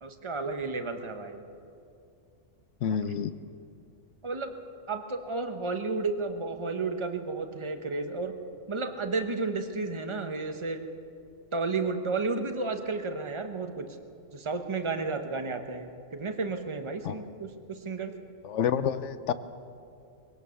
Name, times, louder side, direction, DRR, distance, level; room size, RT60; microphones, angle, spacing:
voice 1, 0.0-1.4 4.2-4.5 4.9-8.4 8.7-10.9 11.5-14.0 14.3-18.2, right 3 dB, 25° right, 6 dB, 1.1 m, -32 dB
voice 2, 2.8-3.3 17.0-17.2 18.4-19.3, left 8 dB, 80° left, 13 dB, 1.1 m, -28 dB
21.5 x 17.5 x 7.0 m, 2.5 s
omnidirectional pair, 1.2 m